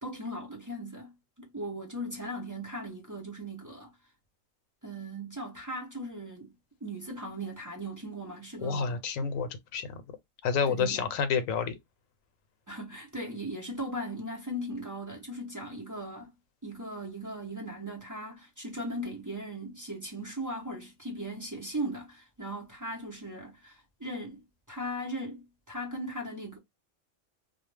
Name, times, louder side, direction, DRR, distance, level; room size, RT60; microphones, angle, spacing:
voice 1, 0.0-3.9 4.8-6.5 6.8-9.3 10.7-11.1 12.7-16.3 16.6-24.4 24.7-26.6, right 1 dB, 25° right, 0.5 m, -38 dB
voice 2, 8.6-9.9 10.4-11.8, left 6 dB, 90° left, 1.0 m, -29 dB
2.3 x 2.1 x 3.2 m
omnidirectional pair, 1.3 m